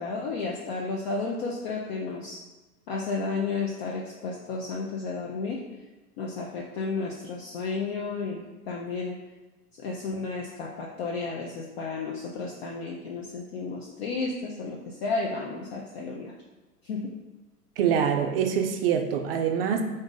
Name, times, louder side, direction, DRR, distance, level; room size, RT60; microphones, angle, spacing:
voice 1, 0.0-2.4 2.9-5.6 6.2-9.2 9.8-16.3 16.8-17.1, left 4 dB, 40° left, -2 dB, 0.5 m, -32 dB
voice 2, 17.8-19.8, right 8 dB, 40° right, 5 dB, 0.4 m, -25 dB
3.5 x 2.6 x 3.7 m, 1.2 s
hypercardioid pair, 115°, 47 cm